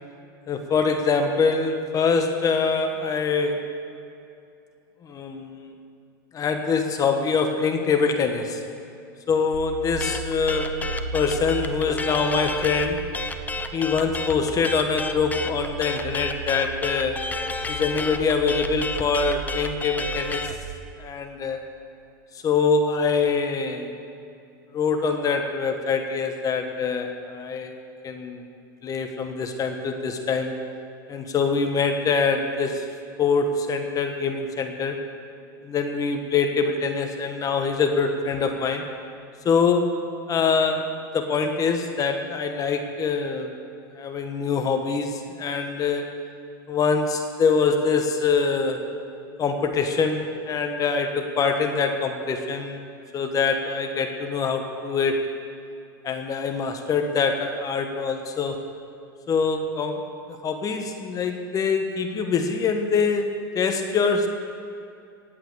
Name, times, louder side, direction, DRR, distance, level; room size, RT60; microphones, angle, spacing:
voice 1, 0.5-3.6 5.0-5.7 6.3-8.6 9.3-13.1 13.7-17.2 17.7-20.5 21.0-21.6 22.4-23.9 24.7-27.7 28.0-28.4 28.8-30.5 31.1-32.9 33.2-35.0 35.6-38.8 39.4-40.0 40.3-43.5 44.0-46.1 46.7-48.8 49.4-52.8 53.1-55.2 56.0-58.6 59.3-60.0 60.4-64.3, left 5 dB, 30° left, 5 dB, 1.4 m, -24 dB
sound 1, 9.5-20.8, right 4 dB, 80° right, 1.3 m, -36 dB
sound 2, 10.0-20.5, left 3 dB, 15° left, 0.9 m, -31 dB
17.5 x 9.0 x 6.9 m, 2.5 s
hypercardioid pair, 105°, 12 cm